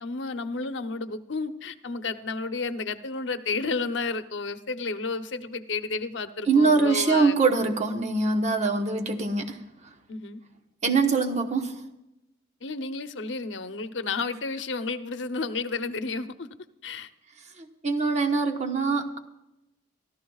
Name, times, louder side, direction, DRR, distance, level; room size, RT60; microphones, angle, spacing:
voice 1, 0.0-7.4 10.1-10.4 12.6-16.5 16.8-17.1, left 4 dB, 80° left, 9 dB, 0.8 m, -32 dB
voice 2, 6.5-9.6 10.8-11.8 17.6-19.2, right 4 dB, 40° right, 4 dB, 1.2 m, -23 dB
26.0 x 13.5 x 2.4 m, 0.89 s
head